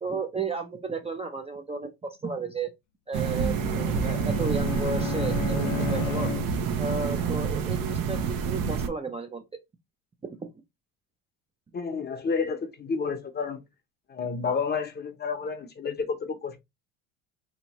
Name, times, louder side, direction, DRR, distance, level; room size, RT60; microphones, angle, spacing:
voice 1, 0.0-2.7 3.1-6.3 6.8-9.4 10.4-10.5, right 4 dB, 15° right, 0.5 m, -33 dB
sound 1, 3.1-8.9, right 6 dB, 60° right, 0.7 m, -28 dB
Bowed string instrument, 3.4-7.0, left 15 dB, 90° left, 0.5 m, -34 dB
voice 2, 11.7-13.6 14.1-16.6, left 5 dB, 25° left, 0.7 m, -30 dB
3.4 x 2.9 x 2.9 m
supercardioid pair, 100°, 38 cm